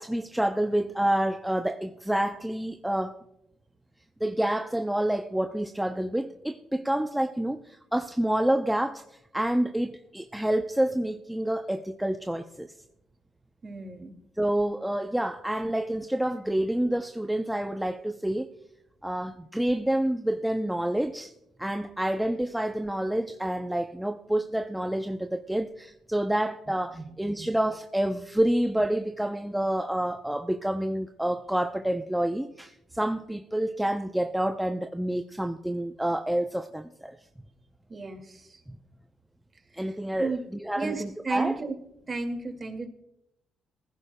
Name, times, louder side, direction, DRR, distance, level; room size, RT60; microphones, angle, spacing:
voice 1, 0.0-3.2 4.2-9.0 9.3-12.7 14.4-18.5 19.0-21.3 21.6-37.2 38.7-38.8 39.8-41.6, right 1 dB, 5° right, 0.6 m, -28 dB
voice 2, 13.6-14.1 26.9-27.1 27.4-27.5 37.9-38.6 40.2-40.4 40.8-41.8 42.1-42.9, right 3 dB, 35° right, 2.1 m, -33 dB
19.5 x 15.5 x 2.2 m
cardioid pair, 90°, 0 cm